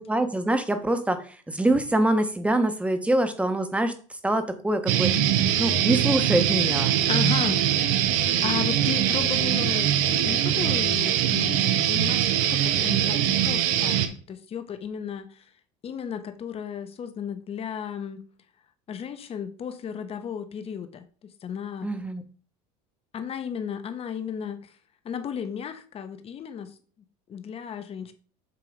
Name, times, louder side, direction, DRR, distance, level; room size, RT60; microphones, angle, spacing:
voice 1, 0.0-3.9 4.2-6.9 21.8-22.2, right 1 dB, 5° right, 1.0 m, -25 dB
sound 1, 4.9-14.1, right 10 dB, 80° right, 0.9 m, -23 dB
voice 2, 7.1-15.5 15.8-18.2 18.9-21.9 23.1-24.7 25.0-26.7 27.3-28.1, left 8 dB, 35° left, 0.9 m, -34 dB
7.7 x 2.9 x 5.1 m
supercardioid pair, 115°, 18 cm